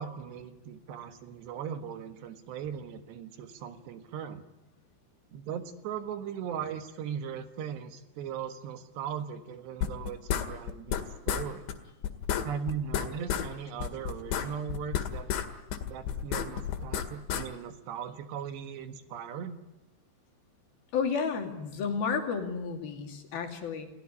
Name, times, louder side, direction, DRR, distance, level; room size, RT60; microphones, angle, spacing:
voice 1, 0.0-4.4 5.3-11.7 12.4-15.3 15.8-19.6, right 8 dB, 70° right, 9 dB, 3.5 m, -38 dB
sound 1, 9.8-11.0 11.3-11.4 11.7-11.8 12.0-13.5 13.8-15.5 15.7-17.4, left 9 dB, 70° left, 4.1 m, -31 dB
voice 2, 20.9-23.9, left 6 dB, 55° left, 5 dB, 4.2 m, -31 dB
29.5 x 17.5 x 9.9 m, 0.99 s
omnidirectional pair, 5.4 m